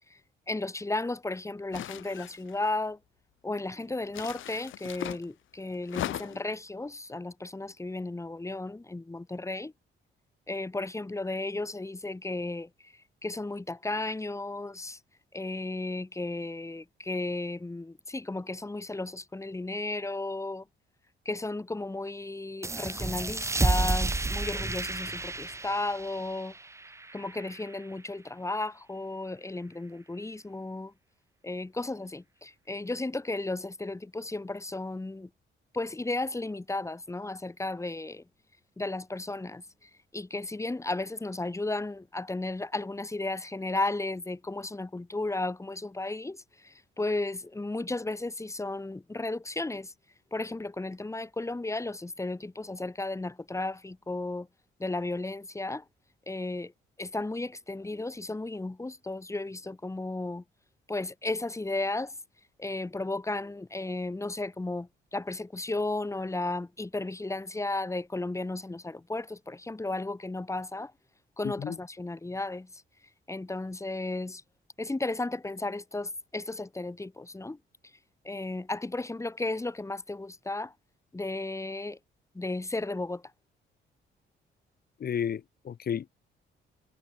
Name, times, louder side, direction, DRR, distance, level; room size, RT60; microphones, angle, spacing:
voice 1, 0.5-3.0 3.4-9.7 10.5-15.0 15.3-20.7 21.2-26.5 27.1-30.9 31.4-35.3 35.7-38.2 38.8-49.9 50.3-54.5 54.8-55.8 56.3-56.7 57.0-60.4 60.9-62.1 62.6-70.9 71.4-72.8 73.3-74.4 74.8-77.6 78.2-80.7 81.1-82.0 82.3-83.2, left 2 dB, 15° left, 2.4 m, -34 dB
sound 1, 1.7-2.7 4.1-5.2 5.8-6.5, left 13 dB, 80° left, 2.7 m, -38 dB
sound 2, 22.6-27.9, right 2 dB, 15° right, 0.9 m, -31 dB
voice 2, 71.4-71.8 85.0-86.1, left 8 dB, 50° left, 1.5 m, -32 dB
cardioid pair, 90°, 20 cm